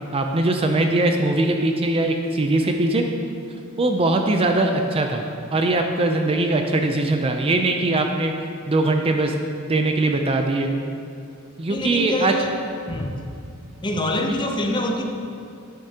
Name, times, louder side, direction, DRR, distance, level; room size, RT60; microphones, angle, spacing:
voice 1, 0.1-3.0 3.8-5.2 5.5-8.3 8.7-10.7 11.6-12.3, right 2 dB, 25° right, 4 dB, 0.4 m, -21 dB
voice 2, 11.7-12.6 12.9-13.2 13.8-15.0, left 1 dB, 20° left, 3 dB, 0.6 m, -25 dB
10.0 x 8.2 x 2.8 m, 2.5 s
head